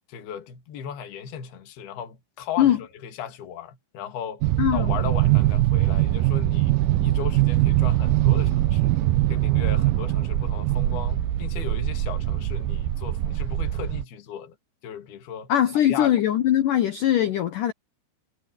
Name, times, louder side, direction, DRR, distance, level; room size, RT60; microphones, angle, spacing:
voice 1, 0.1-6.7 7.0-8.9 9.3-14.6 14.8-15.5 15.9-16.2, left 8 dB, 60° left, 4.1 m, -36 dB
sound 1, 4.4-14.0, right 15 dB, 85° right, 1.9 m, -22 dB
voice 2, 4.6-4.9 15.5-17.7, left 11 dB, 80° left, 1.9 m, -21 dB
omnidirectional pair, 5.3 m